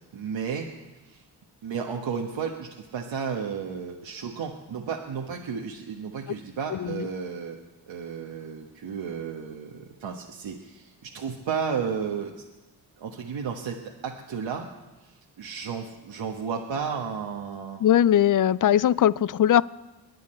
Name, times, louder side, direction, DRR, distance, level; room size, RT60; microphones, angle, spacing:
voice 1, 0.1-0.7 1.0-1.2 1.6-7.6 7.9-12.4 13.0-13.7 14.0-14.7 15.0-17.8, right 6 dB, 70° right, 1.3 m, -33 dB
voice 2, 6.7-7.1 17.8-19.6, left 11 dB, 45° left, 0.5 m, -20 dB
23.0 x 9.6 x 4.3 m
supercardioid pair, 45°, 46 cm